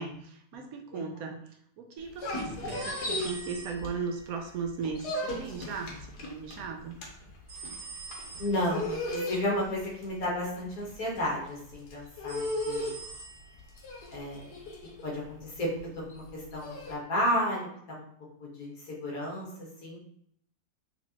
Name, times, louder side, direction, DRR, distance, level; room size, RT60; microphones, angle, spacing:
voice 1, 0.0-1.5 1.8-6.9, right 5 dB, 70° right, 3 dB, 1.0 m, -37 dB
sound 1, 2.0-4.3 4.6-16.9, left 1 dB, 80° left, 1.6 m, -37 dB
sound 2, 2.7-4.3 7.5-8.7 12.3-13.6, right 4 dB, 40° right, 0.7 m, -45 dB
voice 2, 8.4-12.9 14.1-14.5 15.0-15.7 15.9-18.0 18.4-19.5 19.8-20.0, equal, 65° left, -3 dB, 1.8 m, -32 dB
4.3 x 4.1 x 2.8 m, 0.68 s
omnidirectional pair, 1.7 m